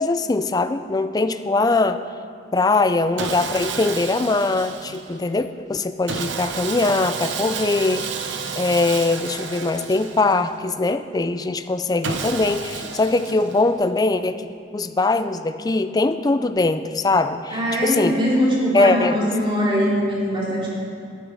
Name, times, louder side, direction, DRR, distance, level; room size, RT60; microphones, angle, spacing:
voice 1, 0.0-2.0 2.5-8.1 8.5-18.2 18.7-19.3, left 3 dB, 20° left, 10 dB, 0.4 m, -21 dB
Sawing, 3.2-5.2 6.1-10.6 12.0-13.9, right 5 dB, 70° right, 0.8 m, -31 dB
voice 2, 17.5-20.7, equal, 25° right, -5 dB, 2.8 m, -21 dB
11.0 x 9.3 x 6.3 m, 2.5 s
head